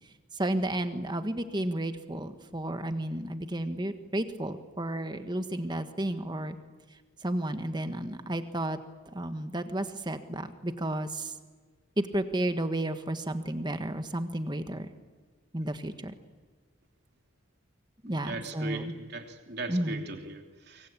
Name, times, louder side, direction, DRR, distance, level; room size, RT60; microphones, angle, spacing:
voice 1, 0.3-6.6 7.2-8.8 9.1-11.3 12.0-14.9 15.5-16.1 18.0-18.9 19.7-20.0, right 1 dB, 20° right, 9 dB, 1.5 m, -32 dB
voice 2, 18.0-20.9, right 2 dB, 55° right, 4 dB, 3.0 m, -39 dB
25.5 x 23.5 x 8.8 m, 1.4 s
head